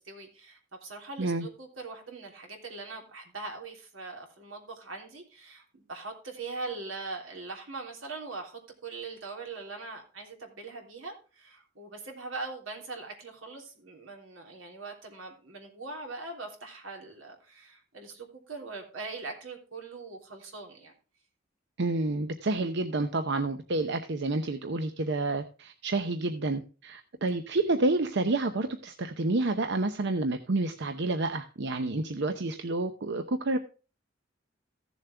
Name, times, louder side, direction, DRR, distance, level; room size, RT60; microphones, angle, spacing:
voice 1, 0.0-20.9, right 3 dB, 85° right, 2 dB, 3.3 m, -41 dB
voice 2, 21.8-33.6, right 2 dB, 60° right, 8 dB, 0.7 m, -29 dB
15.0 x 7.3 x 3.3 m, 0.35 s
head